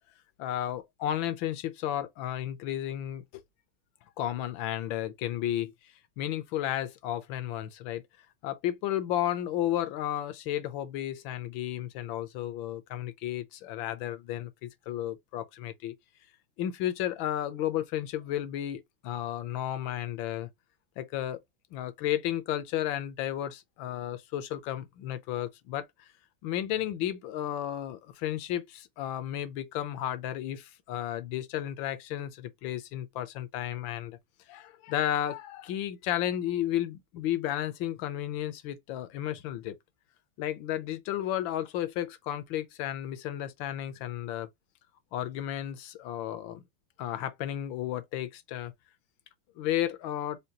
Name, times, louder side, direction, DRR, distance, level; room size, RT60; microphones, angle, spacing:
voice 1, 0.4-3.4 4.2-8.0 8.4-15.9 16.6-20.5 21.0-21.4 21.7-26.1 26.4-34.2 34.5-39.8 40.4-44.5 45.1-46.6 47.0-48.7 49.6-50.4, left 12 dB, 80° left, 1.4 m, -33 dB
5.1 x 2.3 x 2.8 m
omnidirectional pair, 2.2 m